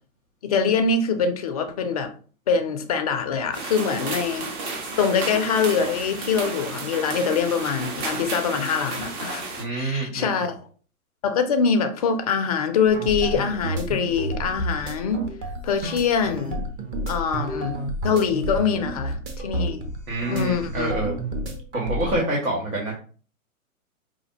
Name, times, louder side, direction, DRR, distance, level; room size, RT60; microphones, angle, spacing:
voice 1, 0.4-2.1 2.5-4.5 5.0-9.5 9.7-10.6 11.2-15.2 15.6-16.6 17.1-19.9 20.3-21.0, left 6 dB, 30° left, 0.4 m, -24 dB
sound 1, 3.5-9.6, right 3 dB, 50° right, 1.4 m, -32 dB
voice 2, 9.5-10.3 20.1-21.2 21.7-22.9, right 1 dB, 90° right, 1.5 m, -26 dB
sound 2, 12.8-22.2, right 1 dB, 25° right, 0.6 m, -31 dB
4.9 x 2.6 x 2.8 m
hypercardioid pair, 130°, 43 cm